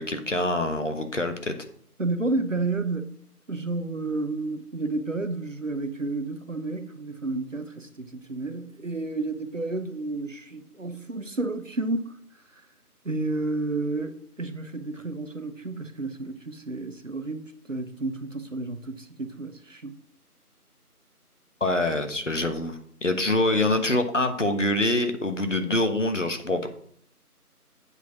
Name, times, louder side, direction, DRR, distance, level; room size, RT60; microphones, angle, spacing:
voice 1, 0.0-1.5 21.6-26.7, left 2 dB, 50° left, 1.2 m, -25 dB
voice 2, 2.0-3.2 3.5-12.2 13.0-17.4 17.7-19.9, right 3 dB, 55° right, 0.9 m, -31 dB
8.0 x 4.9 x 6.0 m
figure-of-eight pair, 170°, 46 cm